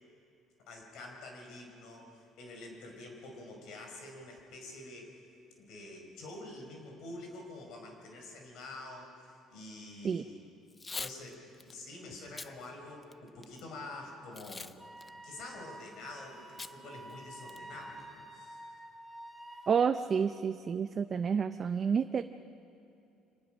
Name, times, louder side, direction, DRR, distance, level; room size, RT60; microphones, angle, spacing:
voice 1, 0.7-5.2 5.6-10.4 11.0-14.7 15.2-18.7, left 2 dB, 65° left, 3 dB, 4.9 m, -47 dB
Packing tape duct tape / Tearing, 10.7-11.2 11.6-11.7 12.2-12.5 13.0-13.6 14.3-14.7 15.0-15.1 16.6-16.7 17.1-17.2 17.5-17.8, left 3 dB, 15° left, 0.5 m, -42 dB
Wind instrument woodwind instrument, 14.8-19.9, right 1 dB, ahead, 2.5 m, -49 dB
voice 2, 19.7-22.2, right 6 dB, 30° right, 9 dB, 0.5 m, -29 dB
25.0 x 19.5 x 6.3 m, 2.7 s
cardioid pair, 155°, 0 cm